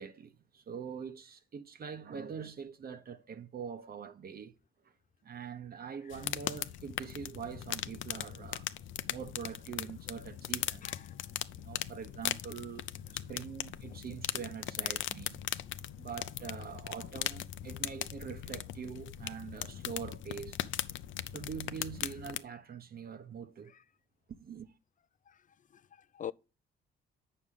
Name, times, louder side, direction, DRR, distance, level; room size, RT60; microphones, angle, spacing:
voice 1, 0.0-4.5 5.2-8.7 9.1-10.9 11.5-15.4 16.0-20.6 21.3-23.7 24.3-24.7, right 7 dB, 50° right, 1.0 m, -44 dB
sound 1, 6.1-22.4, left 12 dB, 80° left, 0.7 m, -39 dB
voice 2, 25.7-26.3, left 9 dB, 40° left, 0.5 m, -44 dB
8.9 x 6.6 x 3.6 m
cardioid pair, 90°, 20 cm